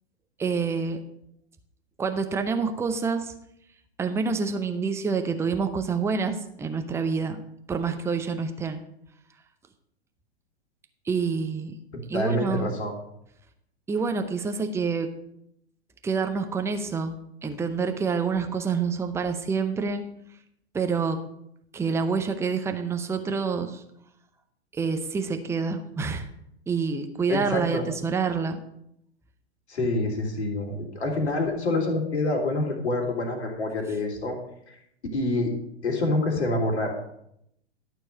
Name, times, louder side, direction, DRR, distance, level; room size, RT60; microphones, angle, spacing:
voice 1, 0.4-1.0 2.0-3.3 4.0-7.4 7.7-8.8 11.1-11.8 12.1-12.7 13.9-15.1 16.0-17.1 17.4-20.0 20.7-21.2 21.7-23.8 24.7-26.3 26.7-28.6, right 5 dB, 10° right, 7 dB, 0.7 m, -27 dB
voice 2, 11.9-12.9 27.3-27.8 29.7-34.4 35.1-35.5 35.8-36.9, left 2 dB, 75° left, 1 dB, 2.9 m, -26 dB
12.0 x 4.6 x 6.5 m, 0.75 s
hypercardioid pair, 110°, 33 cm